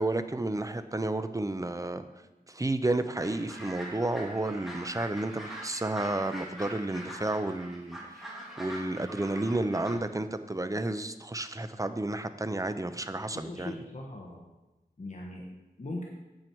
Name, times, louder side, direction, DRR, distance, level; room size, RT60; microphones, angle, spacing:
voice 1, 0.0-2.0 2.5-8.2 8.6-13.7, right 2 dB, 20° right, 10 dB, 0.6 m, -31 dB
sound 1, 3.2-9.9, equal, ahead, 2.4 m, -43 dB
voice 2, 13.3-14.5 15.0-15.5 15.8-16.0, left 2 dB, 45° left, -1 dB, 1.3 m, -40 dB
8.9 x 8.8 x 4.5 m, 1.1 s
wide cardioid pair, 90°, 17 cm